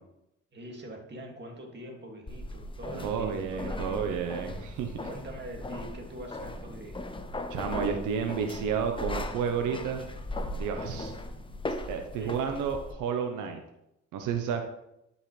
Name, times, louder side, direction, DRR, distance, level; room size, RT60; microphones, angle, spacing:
voice 1, 0.5-4.2 5.1-7.0 10.9-11.1 12.2-12.4, right 1 dB, 35° right, 1 dB, 2.2 m, -43 dB
sound 1, 2.3-12.9, left 1 dB, 15° left, 0.8 m, -38 dB
voice 2, 2.9-5.1 7.5-10.0 10.5-11.1 11.9-13.6 14.1-14.6, right 7 dB, 90° right, 5 dB, 0.9 m, -31 dB
12.0 x 5.6 x 3.2 m, 0.83 s
cardioid pair, 90°, 30 cm